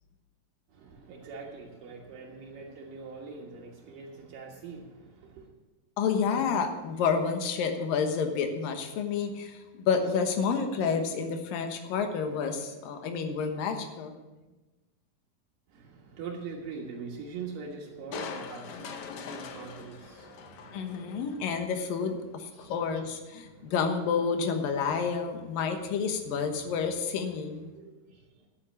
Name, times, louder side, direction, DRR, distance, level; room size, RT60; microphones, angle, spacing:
voice 1, 0.7-5.5 15.7-21.4 22.6-24.1 25.7-25.9 26.6-26.7 27.7-28.5, right 5 dB, 75° right, -1 dB, 3.1 m, -44 dB
voice 2, 6.0-14.2 20.7-27.7, left 6 dB, 80° left, 6 dB, 3.0 m, -29 dB
Crushing, 18.1-21.5 21.9-22.0, left 6 dB, 65° left, 2.1 m, -42 dB
11.0 x 8.6 x 7.3 m, 1.1 s
omnidirectional pair, 3.9 m